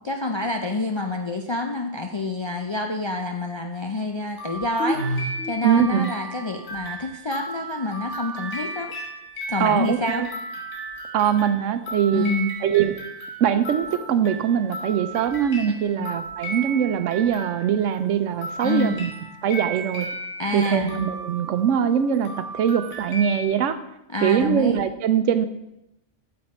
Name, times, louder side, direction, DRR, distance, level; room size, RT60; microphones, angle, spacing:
voice 1, 0.0-8.9 9.5-10.2 12.1-12.6 15.7-16.1 18.6-19.0 20.4-20.9 24.1-24.8, left 2 dB, 45° left, 3 dB, 0.3 m, -27 dB
sound 1, 4.4-18.0 18.4-23.4, right 1 dB, 80° left, 2.2 m, -34 dB
voice 2, 5.6-6.1 9.6-10.3 11.1-12.2 12.6-12.9 13.4-19.1 19.4-20.1 20.5-23.8 24.2-25.5, right 8 dB, 80° right, 11 dB, 1.0 m, -22 dB
8.5 x 6.7 x 4.3 m, 0.87 s
omnidirectional pair, 1.3 m